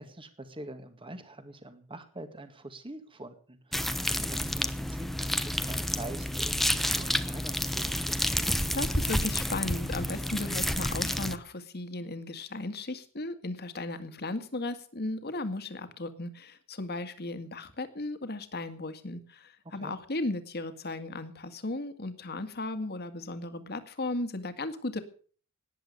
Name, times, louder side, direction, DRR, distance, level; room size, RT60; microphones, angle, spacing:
voice 1, 0.0-8.4 19.7-20.0, right 2 dB, 25° right, 9 dB, 1.8 m, -45 dB
sound 1, 3.7-11.4, equal, ahead, 1.0 m, -30 dB
voice 2, 8.6-25.0, left 2 dB, 50° left, 10 dB, 2.1 m, -36 dB
18.5 x 10.5 x 6.8 m, 0.43 s
head